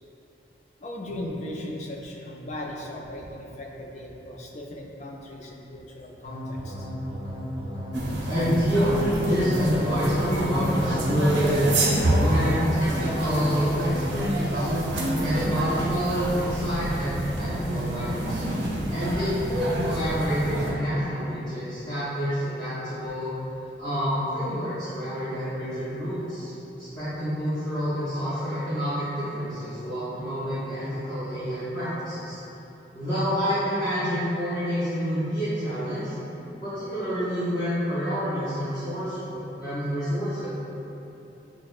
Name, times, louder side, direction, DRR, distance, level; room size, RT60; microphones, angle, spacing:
voice 1, 0.8-6.9, left 1 dB, 40° left, -1 dB, 0.4 m, -38 dB
sound 1, 6.2-14.1, equal, 65° left, 0.9 m, -34 dB
sound 2, 7.9-20.7, right 1 dB, 80° right, 0.6 m, -27 dB
voice 2, 8.3-11.7 12.1-14.7 15.2-18.4 18.9-23.3 23.8-32.4 32.9-36.1 36.6-40.5, equal, 20° left, -16 dB, 0.7 m, -28 dB
5.8 x 2.0 x 2.4 m, 3.0 s
head